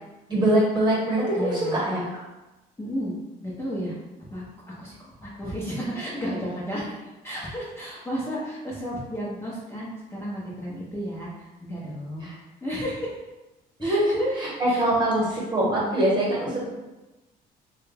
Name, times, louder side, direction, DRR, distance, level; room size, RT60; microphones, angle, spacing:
voice 1, 0.3-2.0 12.2-12.3 13.8-14.1 14.4-16.5, right 1 dB, 25° right, -4 dB, 1.3 m, -23 dB
voice 2, 1.3-1.8 2.8-3.1 3.4-4.0 4.3-4.4 4.8-12.3 12.6-13.2 13.8-14.3 14.7-15.2 15.6-15.9 16.3-16.7, equal, 15° left, -7 dB, 0.7 m, -33 dB
3.2 x 2.3 x 3.3 m, 1.1 s
cardioid pair, 110°, 17 cm